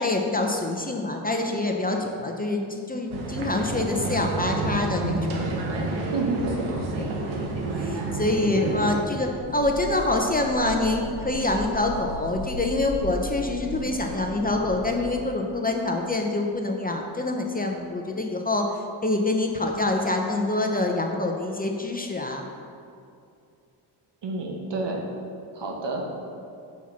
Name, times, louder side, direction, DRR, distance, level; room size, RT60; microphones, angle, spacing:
voice 1, 0.0-5.5 7.8-22.5, left 2 dB, 20° left, 2 dB, 0.7 m, -26 dB
sound 1, 3.1-9.0, right 2 dB, 80° right, 1.1 m, -29 dB
voice 2, 6.1-6.7 24.2-25.0 25.5-26.0, right 3 dB, 60° right, 0 dB, 1.4 m, -29 dB
sound 2, 9.2-15.2, right 1 dB, 35° right, 1.0 m, -37 dB
5.8 x 4.6 x 5.7 m, 2.5 s
supercardioid pair, 60°, 48 cm